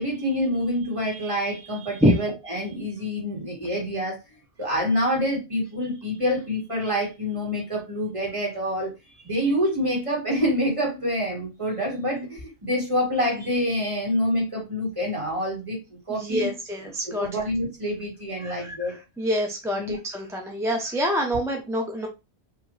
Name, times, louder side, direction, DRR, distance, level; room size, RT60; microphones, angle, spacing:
voice 1, 0.0-4.2 4.6-16.5 17.1-18.9 19.8-20.0, equal, 30° right, -2 dB, 1.8 m, -27 dB
voice 2, 16.1-17.4 18.4-18.9 19.2-22.1, equal, 5° right, 2 dB, 0.5 m, -26 dB
4.0 x 2.9 x 3.2 m, 0.26 s
omnidirectional pair, 1.1 m